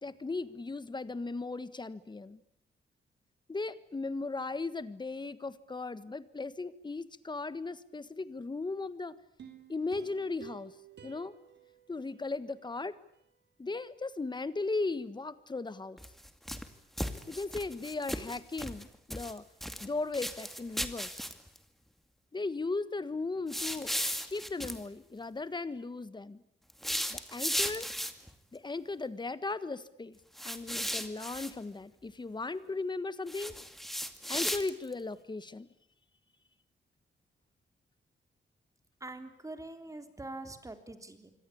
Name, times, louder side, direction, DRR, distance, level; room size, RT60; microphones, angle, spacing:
voice 1, 0.0-2.4 3.5-9.2 9.7-10.7 11.0-11.3 11.9-12.9 13.6-16.0 17.3-19.4 19.8-21.2 22.3-23.9 24.3-26.4 27.1-27.9 28.5-30.2 30.4-33.5 34.3-35.7, left 3 dB, 25° left, 14 dB, 1.5 m, -37 dB
sound 1, 9.4-12.7 13.1-13.2, right 7 dB, 65° right, 4.5 m, -52 dB
sound 2, 16.0-16.7 17.0-18.8 19.1-19.9 20.1-21.6 23.5-24.8 26.7-28.3 30.4-31.5 33.3-34.9, equal, ahead, 2.3 m, -36 dB
voice 2, 39.0-41.3, right 2 dB, 15° right, 7 dB, 3.5 m, -44 dB
26.5 x 24.5 x 8.7 m, 0.75 s
wide cardioid pair, 130°, 19 cm